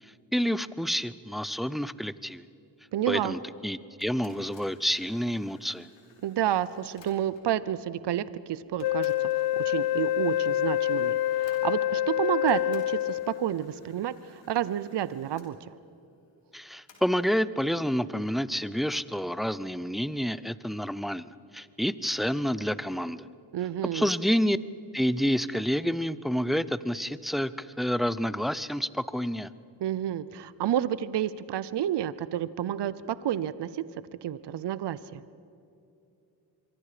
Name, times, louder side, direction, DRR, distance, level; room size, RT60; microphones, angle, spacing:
voice 1, 0.0-2.5 3.1-5.9 16.5-23.3 23.9-24.6 24.9-29.5, equal, ahead, 16 dB, 0.7 m, -29 dB
voice 2, 2.9-3.3 6.2-15.6 23.5-24.1 29.8-33.9 34.2-35.2, right 11 dB, 70° right, 16 dB, 0.8 m, -30 dB
sound 1, 4.0-7.6 8.3-8.4 8.8-12.1 12.5-15.5 16.9-17.4, left 4 dB, 80° left, 3.9 m, -59 dB
Wind instrument woodwind instrument, 8.8-13.5, left 14 dB, 60° left, 0.5 m, -27 dB
26.5 x 23.0 x 5.1 m, 2.7 s
cardioid pair, 65°, 43 cm